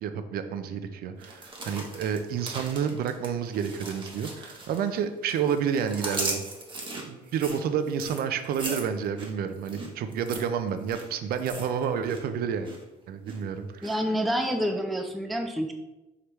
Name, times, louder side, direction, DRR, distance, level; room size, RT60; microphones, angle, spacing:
voice 1, 0.0-6.4 6.9-12.7 13.1-14.0, right 7 dB, 65° right, 9 dB, 0.5 m, -30 dB
sound 1, 1.2-5.0 5.3-12.2 12.5-12.8 13.3-13.9 14.4-14.5, right 2 dB, 30° right, 0.9 m, -38 dB
voice 2, 13.8-15.7, equal, ahead, 5 dB, 0.3 m, -28 dB
4.8 x 3.3 x 3.0 m, 1.0 s
cardioid pair, 110°, 17 cm